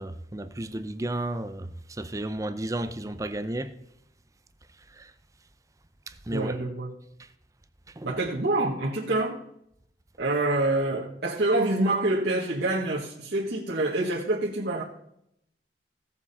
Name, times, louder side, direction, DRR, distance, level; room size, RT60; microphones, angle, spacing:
voice 1, 0.0-3.7 4.9-5.1 6.1-6.6 8.0-8.1, right 1 dB, 20° right, 0.6 m, -33 dB
voice 2, 6.3-6.9 8.0-9.4 10.2-14.8, right 2 dB, 65° right, 1.6 m, -26 dB
16.5 x 7.3 x 4.2 m
head